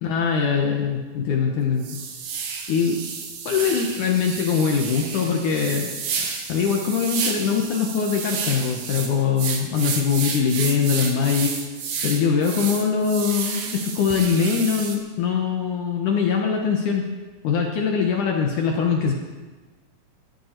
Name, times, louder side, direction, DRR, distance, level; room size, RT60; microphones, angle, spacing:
voice 1, 0.0-2.0 2.7-3.0 3.5-5.9 6.5-11.5 12.0-17.1 17.4-19.1, left 6 dB, 75° left, 1 dB, 1.8 m, -22 dB
sound 1, 0.6-0.7 1.2-1.3 1.8-15.0, right 6 dB, 60° right, 2.3 m, -31 dB
18.0 x 12.5 x 4.5 m, 1.3 s
omnidirectional pair, 5.1 m